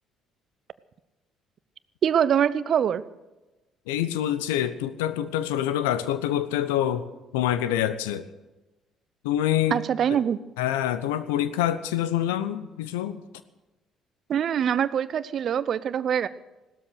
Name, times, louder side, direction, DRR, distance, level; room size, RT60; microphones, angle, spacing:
voice 1, 2.0-3.0 9.7-10.4 14.3-16.3, right 8 dB, 55° right, 17 dB, 0.8 m, -24 dB
voice 2, 3.9-7.1 7.3-8.3 9.2-9.8 10.6-13.2, left 11 dB, 80° left, 13 dB, 0.9 m, -26 dB
17.5 x 13.0 x 6.4 m, 1.1 s
hypercardioid pair, 50°, 0 cm